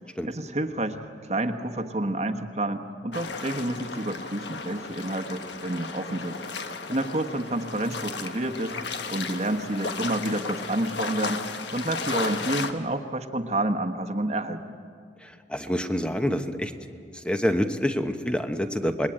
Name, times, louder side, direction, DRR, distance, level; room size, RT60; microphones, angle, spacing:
voice 1, 0.2-1.0 1.3-6.4 6.9-8.7 9.1-11.4 11.7-14.6, right 1 dB, 35° right, 6 dB, 1.2 m, -29 dB
sound 1, 3.1-12.7, left 4 dB, 70° left, 1.4 m, -34 dB
voice 2, 15.2-16.7 17.1-19.1, equal, 5° left, 7 dB, 1.0 m, -27 dB
28.0 x 21.0 x 8.8 m, 2.3 s
head